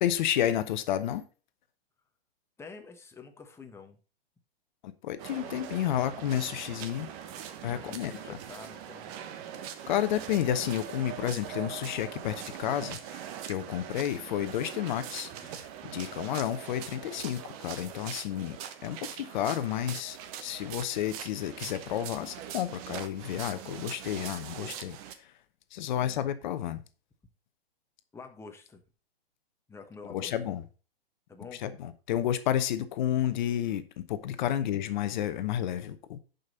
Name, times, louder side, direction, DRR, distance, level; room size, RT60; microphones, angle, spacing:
voice 1, 0.0-1.2 4.8-7.1 7.6-8.1 9.9-15.7 15.9-18.6 18.8-25.0 25.7-26.8 30.1-30.6 31.6-33.8 34.1-36.2, left 11 dB, 50° left, 0.9 m, -31 dB
voice 2, 2.6-4.0 5.9-6.0 7.6-9.1 25.9-26.2 28.1-28.8 29.7-30.4 31.3-31.6, left 4 dB, 10° left, 1.2 m, -48 dB
sound 1, 5.2-25.1, right 9 dB, 35° right, 1.2 m, -42 dB
10.5 x 5.4 x 4.0 m
hypercardioid pair, 125°, 30 cm